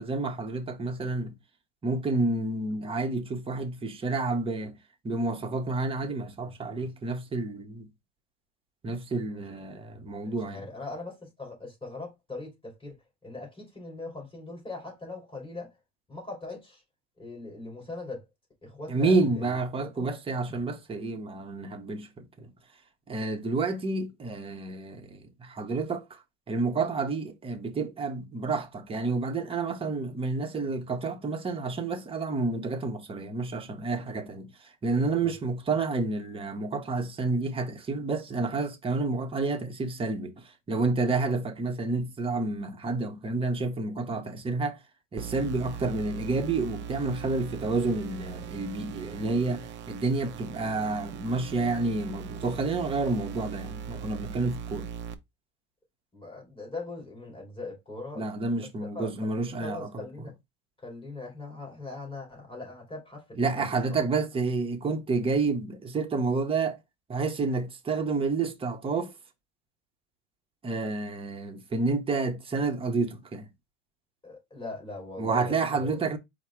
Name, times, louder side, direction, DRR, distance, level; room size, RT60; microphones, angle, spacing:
voice 1, 0.0-1.3 1.8-4.8 5.0-7.9 8.8-10.6 18.9-22.5 23.1-26.2 26.5-34.5 34.8-40.3 40.7-44.8 45.1-54.9 58.2-60.1 63.4-66.8 67.1-69.1 70.6-73.5 75.2-76.2, right 3 dB, 15° right, 0.8 m, -29 dB
voice 2, 6.4-6.9 9.3-9.4 10.2-12.9 13.2-15.7 16.1-16.8 17.2-18.2 18.6-19.5 19.9-20.1 34.9-35.3 50.2-50.4 56.1-58.2 58.5-59.1 59.6-60.3 60.8-64.1 74.2-76.0, left 3 dB, 15° left, 2.9 m, -41 dB
sound 1, 45.2-55.1, right 7 dB, 35° right, 0.6 m, -40 dB
4.8 x 2.1 x 4.4 m
supercardioid pair, 120°, 32 cm